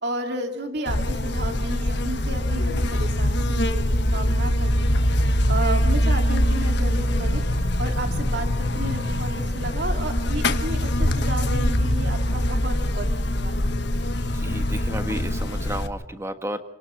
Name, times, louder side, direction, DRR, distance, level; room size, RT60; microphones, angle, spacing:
voice 1, 0.0-3.8 4.1-5.0 5.5-7.4 7.8-13.6, right 1 dB, 55° right, 4 dB, 2.7 m, -32 dB
Buzz, 0.9-15.9, left 1 dB, 55° left, 1.4 m, -23 dB
voice 2, 14.3-16.6, right 1 dB, 15° right, 7 dB, 1.5 m, -32 dB
29.5 x 18.5 x 5.8 m, 0.89 s
head